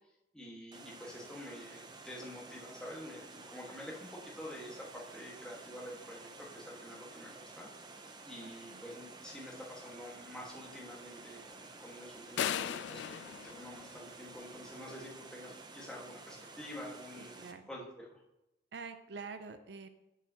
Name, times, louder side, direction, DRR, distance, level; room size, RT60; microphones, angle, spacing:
voice 1, 0.3-7.7 8.2-13.2 13.6-17.3 17.7-18.2, equal, 5° left, -4 dB, 1.5 m, -48 dB
Water, 0.7-17.5, right 3 dB, 25° right, 0.6 m, -52 dB
voice 2, 8.4-8.9 17.1-17.7 18.7-19.9, right 4 dB, 70° right, 9 dB, 0.5 m, -47 dB
sound 1, 12.4-14.5, left 9 dB, 85° left, 0.3 m, -37 dB
8.3 x 7.0 x 2.9 m, 0.91 s
head